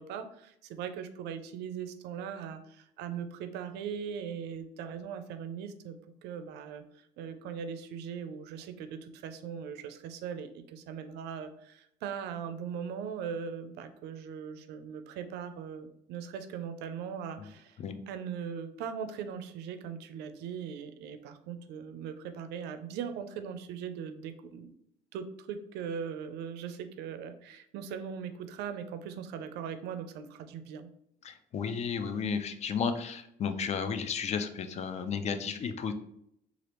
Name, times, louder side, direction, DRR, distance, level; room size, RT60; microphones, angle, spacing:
voice 1, 0.0-17.8 18.1-24.7 25.1-30.9, right 7 dB, 80° right, 9 dB, 0.4 m, -40 dB
voice 2, 31.2-35.9, left 6 dB, 40° left, 9 dB, 0.4 m, -33 dB
2.9 x 2.4 x 3.3 m, 0.73 s
cardioid pair, 110°, 17 cm